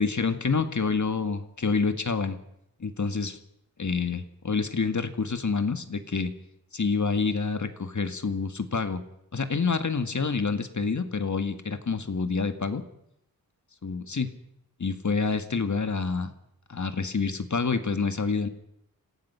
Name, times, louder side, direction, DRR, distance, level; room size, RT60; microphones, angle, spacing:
voice 1, 0.0-2.4 2.8-3.4 3.8-6.3 6.7-9.0 9.3-12.8 13.8-14.3 14.8-16.3 16.7-18.5, left 4 dB, 50° left, 9 dB, 1.9 m, -27 dB
27.0 x 17.0 x 5.7 m, 0.77 s
wide cardioid pair, 80°, 36 cm